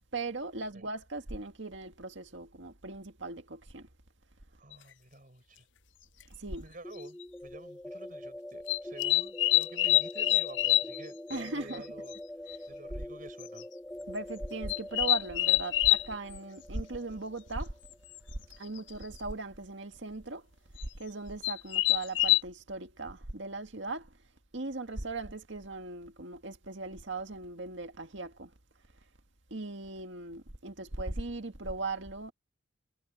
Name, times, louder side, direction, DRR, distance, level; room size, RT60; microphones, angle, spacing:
voice 1, 0.1-3.9 6.3-6.7 11.3-11.8 12.5-12.6 12.9-13.0 14.1-17.7 18.6-20.5 20.9-24.1 24.5-28.5 29.5-32.3, right 3 dB, 70° right, 2.0 m, -38 dB
voice 2, 4.6-5.7 6.6-12.1 12.7-13.7, right 2 dB, 45° right, 5.9 m, -50 dB
sound 1, 4.7-4.8 6.2-6.3 7.0-7.2 8.7-11.0 11.3-11.4 11.7-11.8 12.1-12.2 12.5-12.6 13.4-13.6 14.7-16.1 18.2-18.3 18.5-18.9 20.8-20.9 21.4-22.4, left 17 dB, 70° left, 0.5 m, -26 dB
sound 2, 6.8-18.6, left 1 dB, 5° left, 0.9 m, -45 dB
head